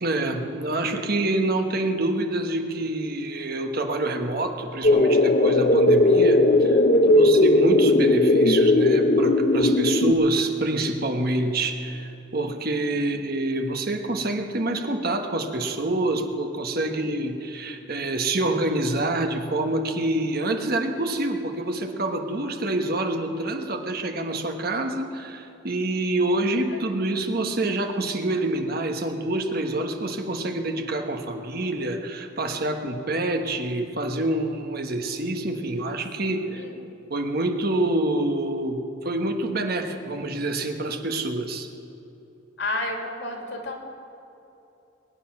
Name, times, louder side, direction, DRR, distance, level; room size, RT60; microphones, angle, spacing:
voice 1, 0.0-36.6 37.1-41.7, right 2 dB, 50° right, 5 dB, 1.3 m, -26 dB
sound 1, 4.8-10.1, left 1 dB, 45° left, 0.7 m, -18 dB
voice 2, 6.9-7.3 16.8-16.9 32.5-32.8 36.2-36.7 42.6-43.8, left 2 dB, 65° left, 2 dB, 2.6 m, -32 dB
21.5 x 9.8 x 6.0 m, 2.9 s
head